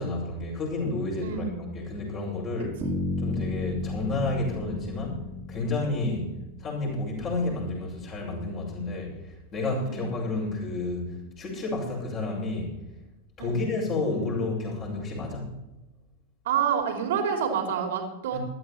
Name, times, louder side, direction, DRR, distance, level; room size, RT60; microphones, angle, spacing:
voice 1, 0.0-1.4 1.7-2.8 3.2-5.2 5.5-6.3 6.6-9.2 9.5-11.1 11.4-12.7 13.4-15.6 18.3-18.4, left 2 dB, 30° left, -2 dB, 6.7 m, -30 dB
voice 2, 1.2-1.6 2.8-3.0 9.8-10.1 13.4-13.6 16.4-18.4, right 7 dB, 55° right, 4 dB, 3.1 m, -28 dB
Bass guitar, 2.8-6.8, left 2 dB, 25° right, 2.9 m, -33 dB
16.0 x 13.0 x 4.4 m, 0.99 s
figure-of-eight pair, 90°, 0 cm